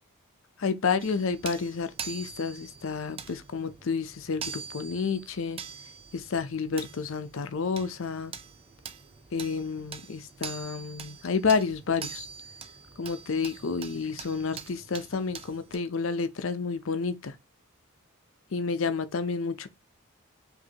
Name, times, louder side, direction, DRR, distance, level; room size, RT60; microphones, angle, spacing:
voice 1, 0.6-5.6 6.1-8.3 9.3-12.3 13.0-17.3 18.5-19.7, left 5 dB, 70° left, 0.6 m, -30 dB
sound 1, 1.0-15.8, right 6 dB, 25° right, 0.3 m, -44 dB
5.0 x 2.7 x 2.8 m
head